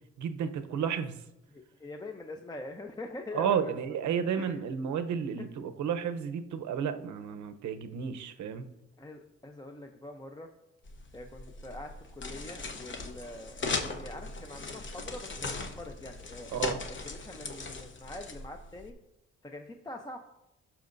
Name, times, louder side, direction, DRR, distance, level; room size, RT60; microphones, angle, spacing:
voice 1, 0.2-1.2 3.3-8.7 16.5-16.8, right 7 dB, 70° right, 8 dB, 0.9 m, -32 dB
voice 2, 1.5-3.8 4.4-4.6 9.0-10.5 11.1-18.9 19.4-20.2, left 2 dB, 15° left, 4 dB, 0.7 m, -44 dB
sound 1, 10.9-18.9, left 3 dB, 40° left, 1.0 m, -39 dB
17.5 x 5.9 x 2.7 m, 0.90 s
cardioid pair, 90°, 30 cm